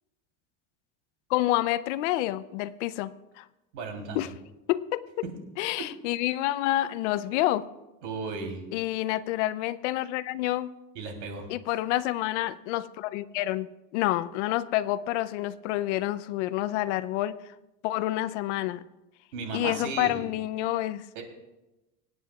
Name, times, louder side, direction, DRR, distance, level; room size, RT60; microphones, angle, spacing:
voice 1, 1.3-3.4 4.1-4.3 4.7-5.3 5.6-7.7 8.7-10.7 11.5-17.4 17.8-18.8 19.5-21.2, left 15 dB, 75° left, 15 dB, 0.6 m, -28 dB
voice 2, 3.7-4.2 5.2-5.3 5.8-5.9 8.0-8.6 10.9-11.5 19.3-20.2 21.1-21.2, right 4 dB, 80° right, 3 dB, 3.4 m, -35 dB
25.0 x 9.8 x 2.4 m, 0.99 s
cardioid pair, 170°, 36 cm